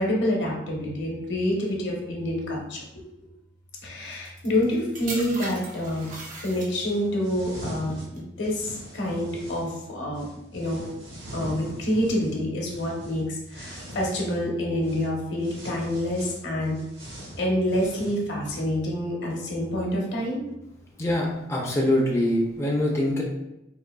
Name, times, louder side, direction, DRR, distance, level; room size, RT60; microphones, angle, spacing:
voice 1, 0.0-3.3 3.8-6.1 6.4-10.8 11.3-16.8 17.4-20.4, left 1 dB, 65° left, -2 dB, 0.9 m, -27 dB
sound 1, 4.0-7.1 7.9-8.2, right 2 dB, 45° right, 0.6 m, -39 dB
sound 2, 5.8-6.3 6.8-9.7 10.1-14.4 14.8-15.1 15.4-18.6, right 1 dB, 75° right, 1.0 m, -42 dB
voice 2, 21.0-23.2, left 1 dB, 15° left, -3 dB, 0.4 m, -24 dB
3.8 x 2.6 x 2.2 m, 0.90 s
head